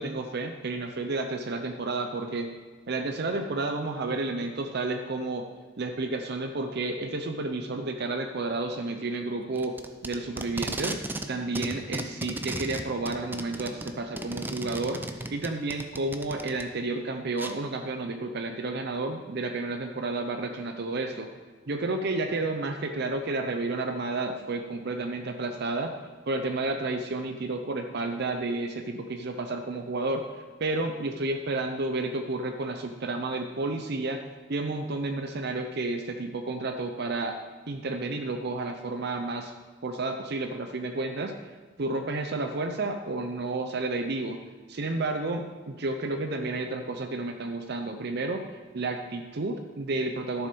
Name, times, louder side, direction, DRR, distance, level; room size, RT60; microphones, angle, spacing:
voice 1, 0.0-2.5 2.9-5.4 5.8-9.7 10.0-11.0 11.3-15.0 15.3-21.3 21.7-25.9 26.3-34.2 34.5-37.4 37.7-39.5 39.8-44.4 44.7-48.4 48.7-50.5, right 2 dB, 55° right, 5 dB, 0.7 m, -31 dB
Packing tape duct tape, 9.6-11.3 11.6-16.6 17.4-17.5, right 1 dB, 10° right, 0.6 m, -35 dB
12.0 x 7.1 x 5.3 m, 1.4 s
head